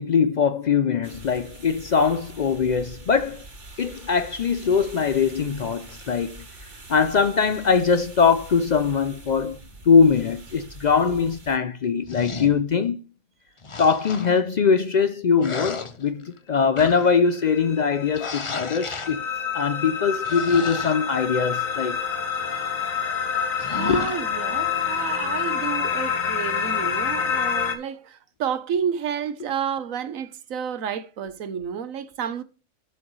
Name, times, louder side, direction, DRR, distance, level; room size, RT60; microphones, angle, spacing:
voice 1, 0.0-3.4 3.8-6.4 6.9-9.6 9.9-13.0 13.8-19.3 19.5-22.0 23.9-24.0, left 6 dB, 75° left, 0.4 m, -21 dB
sound 1, 1.0-11.6, right 2 dB, 60° right, 2.3 m, -44 dB
sound 2, 12.0-12.6 13.6-14.4 15.4-16.4 16.8-17.2 18.1-19.2 20.2-20.9 23.6-24.2 24.7-25.0, left 4 dB, 30° left, 0.6 m, -34 dB
sound 3, 17.2-27.8, left 7 dB, 90° left, 1.7 m, -27 dB
voice 2, 22.3-22.8 23.7-32.4, right 8 dB, 80° right, 1.3 m, -30 dB
11.5 x 6.3 x 3.1 m
omnidirectional pair, 1.4 m